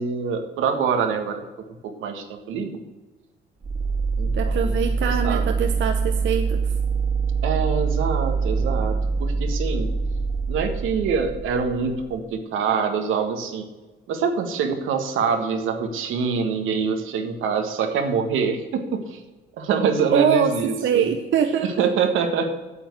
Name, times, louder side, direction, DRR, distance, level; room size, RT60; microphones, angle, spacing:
voice 1, 0.0-1.4 1.8-2.8 4.2-5.5 7.4-9.9 10.5-13.7 14.1-19.2 19.6-21.1 21.6-22.5, right 6 dB, 85° right, 5 dB, 1.6 m, -25 dB
sound 1, 3.6-12.3, right 4 dB, 35° right, 1.9 m, -24 dB
voice 2, 4.3-6.7 20.1-20.5 20.8-22.1, right 8 dB, 70° right, 6 dB, 0.9 m, -23 dB
8.9 x 7.2 x 8.2 m, 1.2 s
cardioid pair, 90°, 20 cm